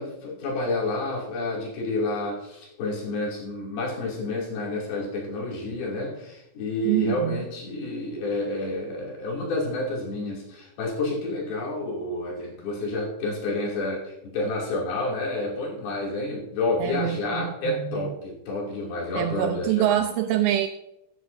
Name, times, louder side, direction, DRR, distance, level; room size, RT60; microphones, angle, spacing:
voice 1, 0.0-19.9, left 2 dB, 55° left, -3 dB, 4.3 m, -29 dB
voice 2, 6.9-7.4 16.8-18.1 19.1-20.7, right 12 dB, 85° right, 8 dB, 2.6 m, -25 dB
16.0 x 9.7 x 2.6 m, 0.85 s
omnidirectional pair, 5.6 m